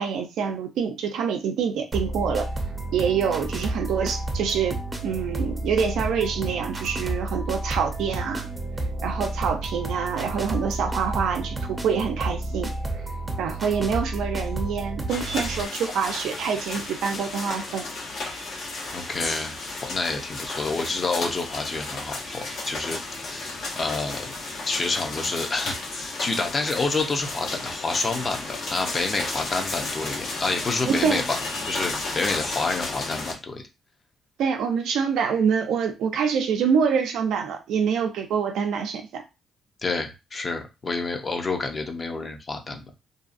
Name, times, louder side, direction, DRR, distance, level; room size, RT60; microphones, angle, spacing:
voice 1, 0.0-2.5 2.9-4.8 5.0-8.5 9.0-12.7 13.4-17.9 30.9-31.2 34.4-39.2, right 6 dB, 80° right, 0.5 m, -26 dB
sound 1, 1.9-15.6, right 2 dB, 20° right, 0.6 m, -31 dB
sound 2, 15.1-33.3, left 2 dB, 75° left, 1.2 m, -33 dB
voice 2, 18.9-19.6 19.8-24.3 24.7-33.6 39.8-42.8, left 3 dB, 35° left, 0.7 m, -28 dB
2.6 x 2.3 x 2.5 m
cardioid pair, 90°, 0 cm